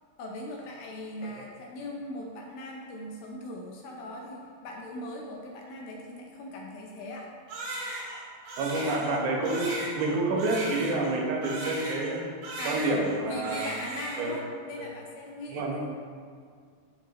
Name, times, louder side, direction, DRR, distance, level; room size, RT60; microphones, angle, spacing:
voice 1, 0.2-7.3 12.6-15.9, left 1 dB, 75° left, -1 dB, 2.3 m, -39 dB
Crying sobbing, 7.5-12.2 12.4-13.2 13.4-14.4, right 2 dB, 70° right, 3.1 m, -37 dB
voice 2, 8.6-12.2 12.7-13.7 14.2-14.4 14.8-14.9 15.5-15.9, right 2 dB, 85° right, -1 dB, 3.2 m, -28 dB
12.0 x 5.2 x 3.0 m, 2.1 s
omnidirectional pair, 4.7 m